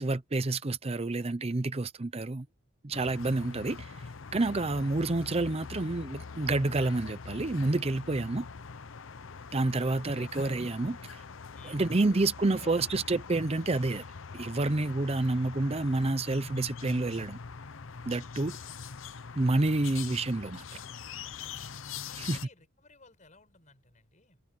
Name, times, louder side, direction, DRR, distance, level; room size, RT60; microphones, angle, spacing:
voice 1, 0.0-2.5 2.8-4.0 4.3-8.5 9.5-11.2 11.6-14.0 14.3-17.4 18.1-18.6 19.4-20.8 22.2-22.4, right 2 dB, 30° right, 0.6 m, -29 dB
sound 1, 2.9-22.5, left 5 dB, 70° left, 0.7 m, -43 dB
voice 2, 9.8-10.4 11.5-13.1 22.0-24.4, left 3 dB, 40° left, 5.1 m, -57 dB
head